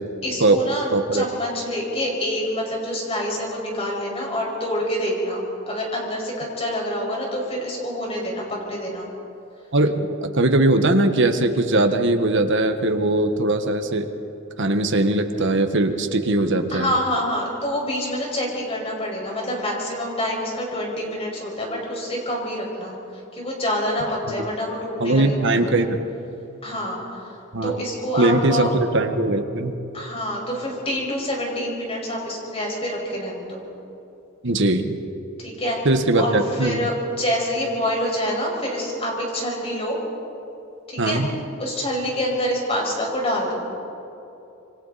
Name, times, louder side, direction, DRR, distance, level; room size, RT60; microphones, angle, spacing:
voice 1, 0.2-9.1 16.7-23.0 23.3-25.7 26.6-27.3 27.6-28.7 29.9-33.6 35.4-35.8 36.1-40.0 40.9-41.2 41.6-43.7, equal, 30° left, -2 dB, 5.7 m, -27 dB
voice 2, 0.9-1.3 9.7-14.1 14.6-16.9 24.2-24.3 25.0-26.0 27.5-27.7 28.2-29.8 34.4-35.0 35.8-36.9 41.0-41.3, right 2 dB, 60° right, 6 dB, 1.5 m, -20 dB
27.5 x 25.0 x 4.2 m, 2.8 s
head